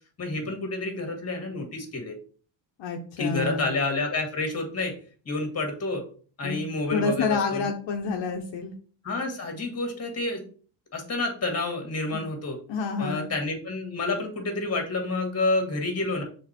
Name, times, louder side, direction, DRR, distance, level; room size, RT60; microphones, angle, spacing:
voice 1, 0.2-2.1 3.2-5.0 5.3-6.0 6.4-7.7 9.0-10.4 10.9-12.6 13.0-16.2, left 2 dB, 30° left, 3 dB, 2.0 m, -29 dB
voice 2, 2.8-3.7 6.4-6.6 6.9-8.7 12.1-12.2 12.7-13.3, left 5 dB, 70° left, 2 dB, 1.0 m, -28 dB
6.4 x 3.8 x 4.4 m, 0.42 s
cardioid pair, 130°, 45 cm